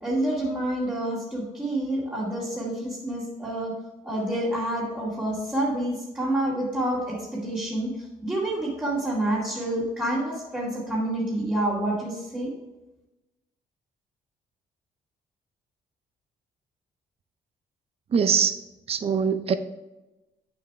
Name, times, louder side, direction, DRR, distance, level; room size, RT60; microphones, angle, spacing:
voice 1, 0.0-3.8 4.0-12.5, right 1 dB, 10° right, -8 dB, 2.2 m, -28 dB
voice 2, 18.1-18.5 18.9-19.5, right 7 dB, 40° right, 10 dB, 0.5 m, -22 dB
8.4 x 6.9 x 3.3 m, 1.0 s
cardioid pair, 120°, 16 cm